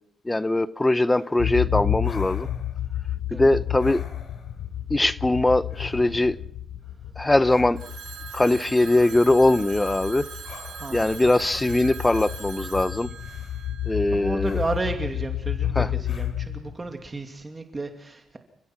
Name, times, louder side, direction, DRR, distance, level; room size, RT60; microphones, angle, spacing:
voice 1, 0.3-2.5 3.3-4.0 4.9-6.4 7.2-7.8 8.3-10.3 10.9-13.1 13.9-14.6 15.8-15.9, left 2 dB, 15° left, 0.8 m, -21 dB
sound 1, 1.1-1.4 2.0-2.9 3.8-4.7 5.7-6.3 7.5-7.7 8.9-9.4 10.4-11.1 13.1-13.7 14.4-15.1 16.0-16.3, left 5 dB, 55° left, 3.4 m, -47 dB
sound 2, 1.4-17.0, left 11 dB, 80° left, 4.0 m, -31 dB
Telephone, 7.8-14.6, right 7 dB, 65° right, 6.4 m, -41 dB
voice 2, 10.8-11.3 14.1-18.4, right 3 dB, 25° right, 2.6 m, -33 dB
30.0 x 15.0 x 6.0 m
cardioid pair, 90°, 0 cm